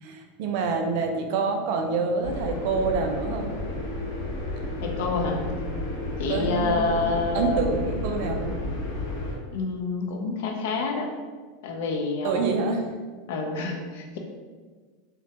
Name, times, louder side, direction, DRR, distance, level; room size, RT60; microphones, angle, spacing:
voice 1, 0.0-3.5 6.3-7.1 7.3-8.6 12.2-12.9, right 4 dB, 60° right, 4 dB, 0.3 m, -27 dB
sound 1, 2.2-9.3, left 1 dB, 85° left, 1.0 m, -31 dB
voice 2, 4.8-5.4 6.2-7.6 9.5-11.1 11.6-12.5 13.3-14.2, left 4 dB, 70° left, 2 dB, 0.4 m, -28 dB
2.1 x 2.1 x 2.7 m, 1.4 s
supercardioid pair, 140°, 0 cm